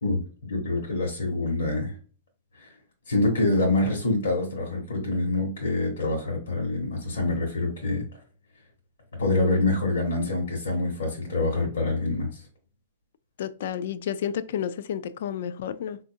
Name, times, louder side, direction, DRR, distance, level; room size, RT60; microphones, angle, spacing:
voice 1, 0.0-1.9 2.6-2.7 3.1-8.0 9.2-12.4, left 2 dB, 85° left, 1.1 m, -26 dB
voice 2, 13.4-16.0, left 9 dB, 65° left, 0.3 m, -31 dB
4.0 x 2.4 x 2.6 m
hypercardioid pair, 125°, 0 cm